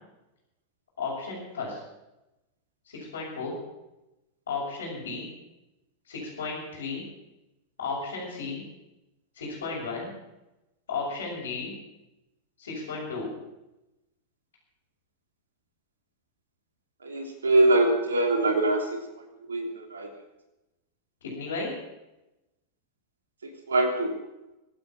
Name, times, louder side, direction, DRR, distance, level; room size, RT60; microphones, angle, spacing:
voice 1, 1.0-1.8 2.9-3.6 4.5-5.3 6.1-7.0 7.8-8.6 9.3-10.1 10.9-11.7 12.6-13.3 21.2-21.7, left 4 dB, 65° left, -9 dB, 6.2 m, -34 dB
voice 2, 17.0-19.0 19.5-20.1 23.7-24.1, right 2 dB, 70° right, 3 dB, 3.0 m, -23 dB
23.5 x 9.0 x 6.0 m, 0.97 s
figure-of-eight pair, 90°, 0 cm